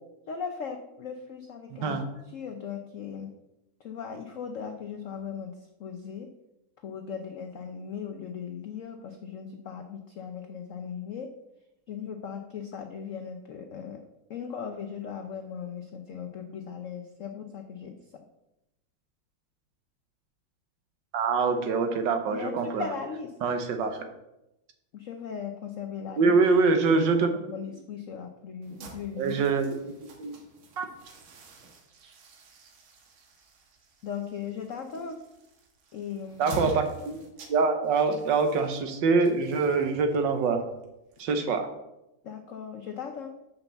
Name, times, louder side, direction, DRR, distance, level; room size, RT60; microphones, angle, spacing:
voice 1, 0.3-2.0 2.3-3.3 3.8-6.3 6.8-11.3 11.9-14.0 14.3-18.0 22.3-23.3 24.9-26.3 27.4-29.4 34.0-35.2 35.9-36.5 42.2-43.3, left 7 dB, 90° left, 5 dB, 0.6 m, -38 dB
voice 2, 1.7-2.0 21.1-22.9 23.4-24.0 26.2-27.3 29.2-29.9 30.2-30.4 30.8-30.9 36.4-37.2 37.5-40.6 41.2-41.7, right 4 dB, 65° right, 6 dB, 1.5 m, -24 dB
sound 1, 28.6-41.7, right 3 dB, 90° right, 2.0 m, -46 dB
5.9 x 5.5 x 6.9 m, 0.90 s
omnidirectional pair, 2.2 m